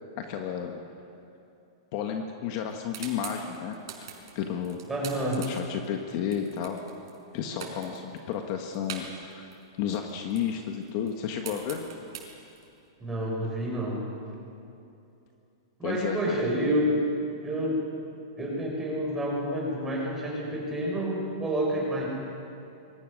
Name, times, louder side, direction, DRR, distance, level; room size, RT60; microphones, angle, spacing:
voice 1, 0.2-0.8 1.9-3.8 4.3-4.8 5.4-6.8 7.3-9.5 9.8-11.8 15.8-16.3, left 8 dB, 40° left, 3 dB, 1.5 m, -32 dB
sound 1, 2.6-7.3 7.6-9.6 9.9-12.8, right 7 dB, 65° right, 5.5 m, -43 dB
voice 2, 4.9-5.4 13.0-14.0 15.8-16.9 17.4-17.8 18.4-22.0, equal, 10° right, -3 dB, 5.9 m, -29 dB
27.0 x 23.5 x 6.6 m, 2.7 s
supercardioid pair, 170°, 2 cm